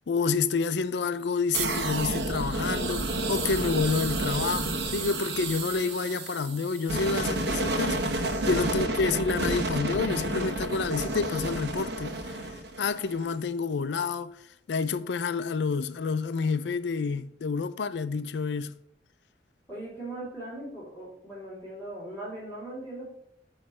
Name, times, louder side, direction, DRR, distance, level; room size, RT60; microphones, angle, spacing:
voice 1, 0.1-12.4 12.8-14.3 14.7-18.7, left 4 dB, 85° left, 0.4 m, -29 dB
sound 1, 1.5-13.3, right 2 dB, 80° right, 0.9 m, -30 dB
voice 2, 19.7-23.1, right 1 dB, 10° left, 3.2 m, -39 dB
8.7 x 3.2 x 6.0 m
head